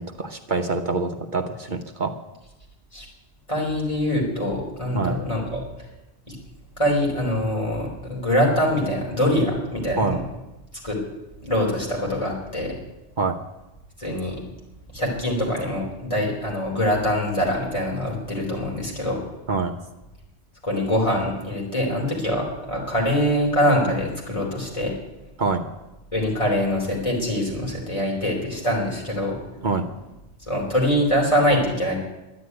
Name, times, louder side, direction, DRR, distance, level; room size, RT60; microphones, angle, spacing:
voice 1, 0.0-2.1 4.9-5.1 10.0-10.2 13.2-13.4 19.5-19.7 25.4-25.6 29.6-29.8, right 4 dB, 50° right, 6 dB, 1.0 m, -25 dB
voice 2, 3.5-5.6 6.3-6.4 6.8-10.2 10.8-11.0 11.4-12.7 14.0-14.4 14.9-19.2 20.6-24.9 26.1-29.4 30.5-31.9, equal, 30° left, -3 dB, 4.2 m, -24 dB
12.0 x 9.7 x 9.6 m, 1.0 s
omnidirectional pair, 1.1 m